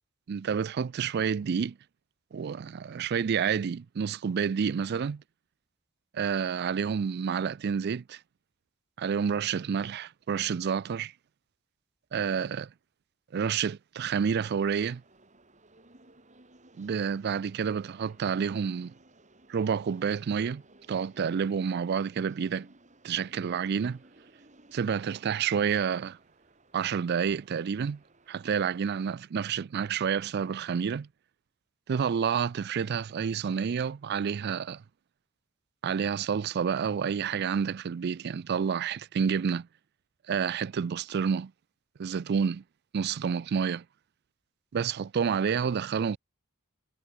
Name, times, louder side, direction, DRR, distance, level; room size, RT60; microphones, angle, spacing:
voice 1, 0.3-1.8 2.3-5.2 6.1-8.2 9.0-11.1 12.1-12.7 13.3-15.0 16.8-18.9 19.5-20.6 20.9-22.7 23.0-24.0 24.7-26.2 26.7-28.0 28.3-31.1 31.9-34.8 35.8-39.7 40.3-41.5 42.0-42.6 42.9-43.8 44.7-46.2, right 7 dB, 50° right, 0.4 m, -29 dB
sound 1, 14.5-28.6, right 2 dB, 35° right, 5.6 m, -59 dB
head